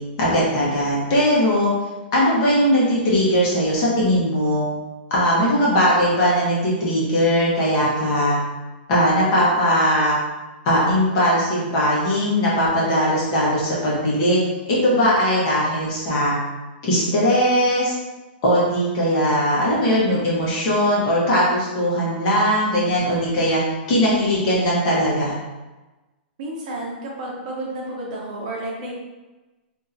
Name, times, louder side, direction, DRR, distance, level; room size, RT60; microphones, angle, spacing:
voice 1, 0.2-1.7 2.1-4.6 5.1-8.4 8.9-10.2 10.6-14.4 14.7-16.4 16.8-17.9 18.4-23.6 23.9-25.3, equal, 35° left, -6 dB, 1.2 m, -19 dB
voice 2, 26.4-28.9, right 1 dB, 45° right, -3 dB, 0.9 m, -31 dB
3.7 x 2.7 x 2.7 m, 1.1 s
hypercardioid pair, 170°, 6 cm